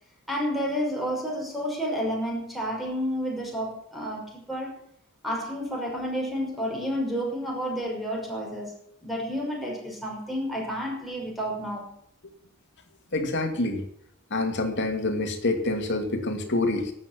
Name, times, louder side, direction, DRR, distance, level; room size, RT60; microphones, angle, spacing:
voice 1, 0.3-4.8 5.2-8.7 9.0-11.9, equal, ahead, -3 dB, 5.9 m, -30 dB
voice 2, 13.1-13.9 14.3-16.9, left 2 dB, 55° left, 5 dB, 2.5 m, -27 dB
12.5 x 9.1 x 8.5 m, 0.68 s
head